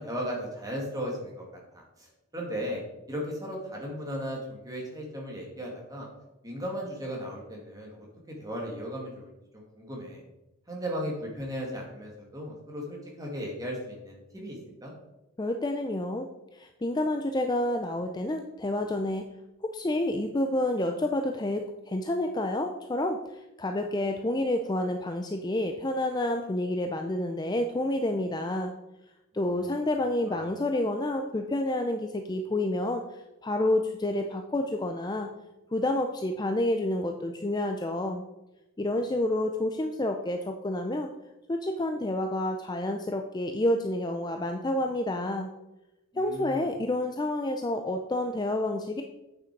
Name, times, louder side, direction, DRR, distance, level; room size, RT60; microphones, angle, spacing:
voice 1, 0.0-1.4 2.0-2.1 2.3-2.8 3.1-6.1 6.4-10.2 10.7-14.9 29.6-29.9 30.3-30.4 46.1-46.7, equal, 15° right, -1 dB, 2.0 m, -36 dB
voice 2, 15.4-19.3 19.7-28.7 29.3-35.3 35.7-38.3 38.8-41.1 41.5-45.5 46.2-49.0, left 1 dB, 20° left, 5 dB, 0.4 m, -29 dB
8.3 x 6.3 x 4.6 m, 0.98 s
head